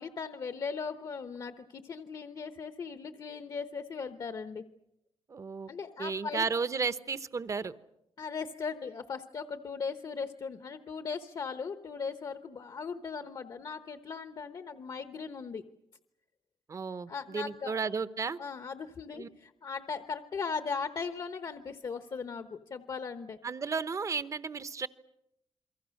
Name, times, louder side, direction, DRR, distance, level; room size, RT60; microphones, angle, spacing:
voice 1, 0.0-4.6 5.7-6.5 8.2-15.6 17.1-17.7 18.4-23.4, left 5 dB, 45° left, 9 dB, 1.0 m, -38 dB
voice 2, 5.3-5.7 6.0-7.7 16.7-18.4 19.2-19.3 23.4-24.9, right 5 dB, 35° right, 14 dB, 0.9 m, -33 dB
28.5 x 23.0 x 6.5 m, 0.84 s
wide cardioid pair, 155°, 10 cm